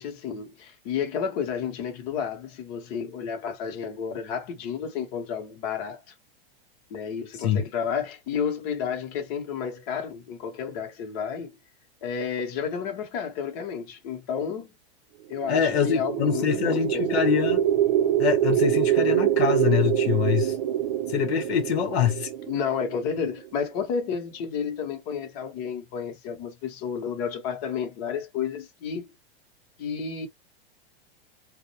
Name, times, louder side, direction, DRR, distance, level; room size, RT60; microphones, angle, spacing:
voice 1, 0.0-6.1 6.9-11.5 12.0-14.7 15.3-17.2 22.5-29.1 29.8-30.3, left 7 dB, 40° left, 0.8 m, -31 dB
sound 1, 15.3-23.5, right 12 dB, 50° right, 0.6 m, -25 dB
voice 2, 15.5-17.6 18.2-20.6 21.1-22.3, left 9 dB, 85° left, 0.8 m, -24 dB
2.3 x 2.1 x 2.7 m
supercardioid pair, 165°, 31 cm